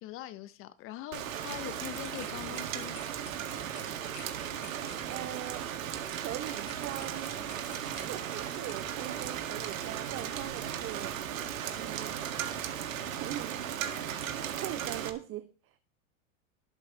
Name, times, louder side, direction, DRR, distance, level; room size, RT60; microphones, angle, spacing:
voice 1, 0.0-3.0, left 14 dB, 30° left, 0.6 m, -42 dB
Rain, 1.1-15.1, right 9 dB, 70° right, 1.9 m, -36 dB
sound 1, 1.8-8.7, left 9 dB, 50° left, 4.8 m, -53 dB
voice 2, 5.1-5.7 6.2-7.4 8.0-11.2 11.8-12.2 13.2-13.7 14.6-15.8, right 14 dB, 30° right, 0.7 m, -41 dB
18.5 x 8.1 x 3.1 m
hypercardioid pair, 105°, 41 cm